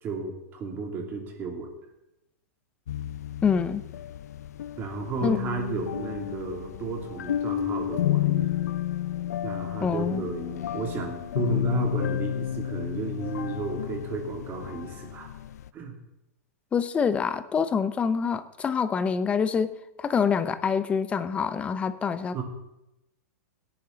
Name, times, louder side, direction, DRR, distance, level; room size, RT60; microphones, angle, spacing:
voice 1, 0.0-1.7 4.8-8.5 9.4-15.3 15.7-16.0 22.3-22.4, right 4 dB, 25° right, 2 dB, 2.8 m, -33 dB
sound 1, 2.9-15.7, left 11 dB, 80° left, 0.6 m, -31 dB
voice 2, 3.4-3.8 5.2-5.4 9.8-10.3 16.7-22.4, left 6 dB, 15° left, 13 dB, 0.7 m, -26 dB
17.0 x 10.5 x 4.0 m, 0.89 s
supercardioid pair, 155°, 9 cm